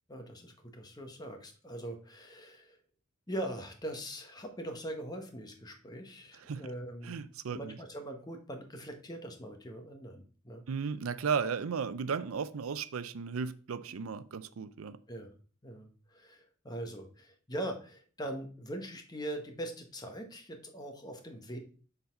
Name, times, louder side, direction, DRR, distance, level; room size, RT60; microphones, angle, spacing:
voice 1, 0.1-2.8 3.3-7.2 7.5-10.6 13.9-14.0 15.1-15.3 15.6-21.6, right 1 dB, 20° left, 1.1 m, -42 dB
voice 2, 7.0-7.8 10.7-15.0, right 6 dB, 85° right, 0.5 m, -35 dB
6.9 x 4.0 x 5.2 m
head